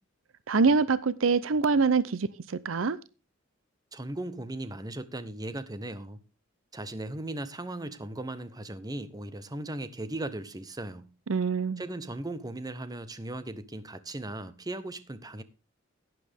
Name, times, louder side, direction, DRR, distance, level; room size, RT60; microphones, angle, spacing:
voice 1, 0.5-3.0 11.3-11.8, right 4 dB, 75° right, 0.6 m, -25 dB
voice 2, 3.9-6.2 6.7-11.1 11.8-15.4, right 1 dB, 20° right, 0.9 m, -37 dB
11.5 x 10.5 x 3.5 m
head